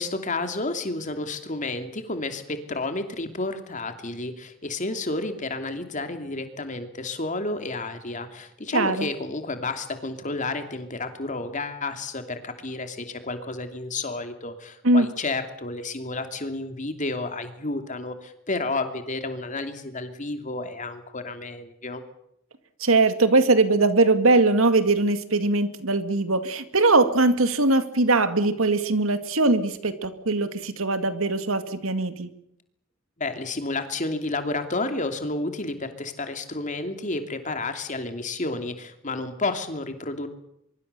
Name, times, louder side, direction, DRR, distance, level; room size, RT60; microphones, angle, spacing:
voice 1, 0.0-22.0 33.2-40.3, left 2 dB, 40° left, 7 dB, 2.8 m, -31 dB
voice 2, 8.7-9.1 14.8-15.1 22.8-32.3, right 2 dB, 85° right, 10 dB, 2.2 m, -21 dB
24.5 x 23.0 x 6.9 m, 0.76 s
head